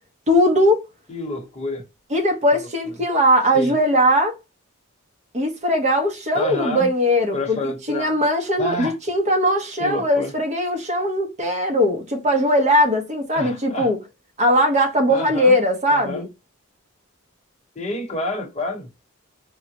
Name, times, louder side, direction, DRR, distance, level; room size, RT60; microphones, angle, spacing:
voice 1, 0.3-0.9 2.1-4.3 5.3-7.6 7.9-14.0 14.4-16.3, equal, 35° right, 0.8 m, -19 dB
voice 2, 1.1-1.8 2.5-2.7 3.5-3.7 6.3-6.9 7.3-8.2 8.6-9.0 9.8-10.3 13.3-13.9 15.1-15.5 15.9-16.2 17.7-19.0, left 1 dB, 30° left, 0.9 m, -29 dB
3.8 x 2.1 x 2.8 m
head